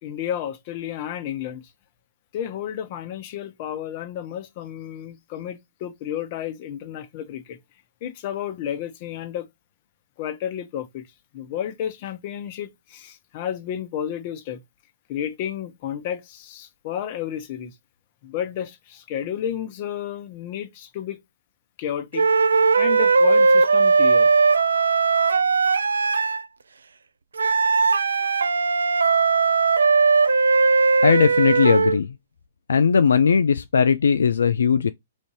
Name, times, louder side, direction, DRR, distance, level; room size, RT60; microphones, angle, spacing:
voice 1, 0.0-1.6 2.3-7.6 8.0-9.5 10.2-11.1 11.3-14.6 15.1-17.7 18.2-21.2 21.8-22.3 22.8-24.3, left 9 dB, 45° left, 0.9 m, -31 dB
sound 1, 22.1-26.4 27.4-32.0, right 4 dB, 85° right, 0.4 m, -18 dB
voice 2, 31.0-32.2 32.7-34.9, left 6 dB, 80° left, 0.3 m, -18 dB
4.2 x 2.7 x 4.7 m
hypercardioid pair, 125°, 0 cm